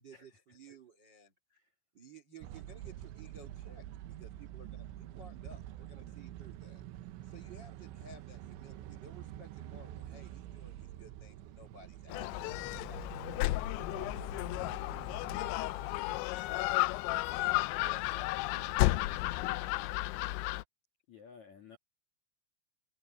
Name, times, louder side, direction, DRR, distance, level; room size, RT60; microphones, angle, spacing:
voice 1, 0.0-1.6 1.9-6.8 7.2-13.3 13.9-17.0 17.3-19.8, right 2 dB, 40° right, 1.6 m, -56 dB
sound 1, 2.4-16.2, right 12 dB, 75° right, 3.1 m, -47 dB
Gull seagull, 12.1-20.6, left 19 dB, 90° left, 2.6 m, -33 dB
voice 2, 21.1-21.8, left 6 dB, 55° left, 2.1 m, -55 dB
open air
omnidirectional pair, 5.9 m